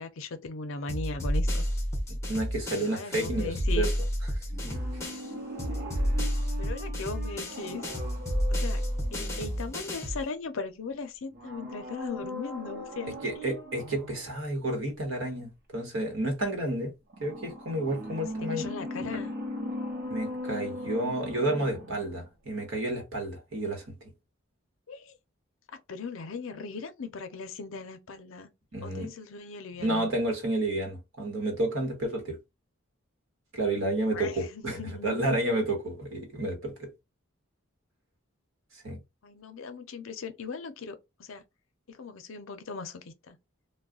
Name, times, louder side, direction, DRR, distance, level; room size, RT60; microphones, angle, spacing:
voice 1, 0.0-1.6 2.8-3.9 6.6-7.9 8.5-8.8 9.1-13.6 18.5-19.3 24.9-25.2 25.7-28.5 28.8-30.1 34.1-35.4 39.2-41.4 41.9-43.4, left 4 dB, 70° left, 0.5 m, -38 dB
sound 1, 0.9-5.3 5.6-10.2, equal, 15° left, 0.6 m, -30 dB
voice 2, 2.1-3.9 4.6-4.8 13.2-16.9 17.2-18.6 19.0-19.1 20.1-23.9 28.7-29.1 29.8-32.4 33.5-36.9 38.8-39.0, right 1 dB, 70° right, 1.2 m, -30 dB
sound 2, 4.5-10.2 11.3-14.3 17.1-22.3 22.6-22.7, left 1 dB, 50° right, 1.0 m, -39 dB
2.3 x 2.1 x 3.6 m
head